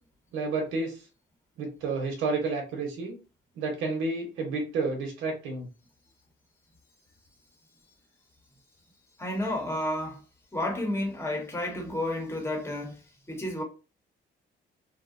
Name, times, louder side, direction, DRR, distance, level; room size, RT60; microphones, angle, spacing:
voice 1, 0.3-1.0 1.6-3.2 3.6-5.7, right 3 dB, 90° right, 0.7 m, -30 dB
voice 2, 9.2-10.2 10.5-13.0 13.3-13.6, left 1 dB, 10° left, 0.8 m, -31 dB
2.7 x 2.0 x 2.5 m
cardioid pair, 90°, 20 cm